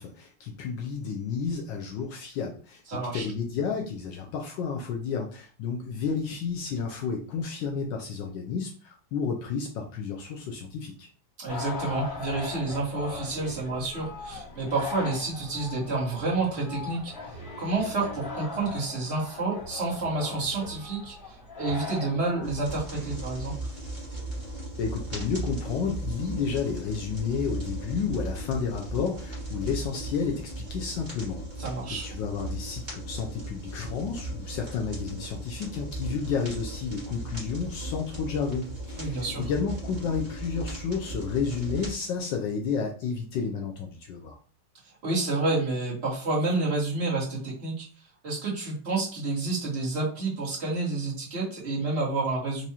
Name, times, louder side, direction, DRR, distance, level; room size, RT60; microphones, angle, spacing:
voice 1, 0.0-2.8 3.1-11.1 24.8-31.7 32.0-44.4, left 5 dB, 75° left, 1 dB, 1.2 m, -31 dB
voice 2, 2.9-3.2 11.4-17.1 17.6-21.1 21.6-23.5 31.6-32.1 39.0-39.4 45.0-47.9 48.2-52.7, right 3 dB, 35° right, -5 dB, 1.5 m, -29 dB
sound 1, 11.5-22.8, left 3 dB, 55° left, 2.1 m, -39 dB
sound 2, 22.4-41.9, right 1 dB, 20° right, 1.6 m, -37 dB
4.7 x 2.6 x 2.8 m, 0.41 s
omnidirectional pair, 2.2 m